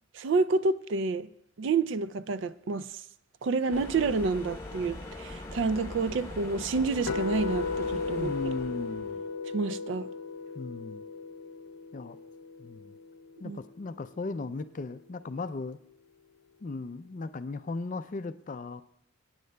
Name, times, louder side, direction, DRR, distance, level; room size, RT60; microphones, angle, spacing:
voice 1, 0.1-1.3 1.6-3.0 3.4-8.3 9.5-10.1 13.4-13.6, right 4 dB, 60° right, 0.4 m, -29 dB
sound 1, 3.7-9.3, left 2 dB, 15° left, 0.9 m, -42 dB
sound 2, 7.1-13.1, left 4 dB, 85° left, 0.6 m, -35 dB
voice 2, 8.2-9.3 10.5-11.1 11.9-12.2 12.6-13.0 13.4-15.8 16.6-18.8, left 3 dB, 35° left, 0.4 m, -37 dB
23.5 x 9.4 x 2.2 m
head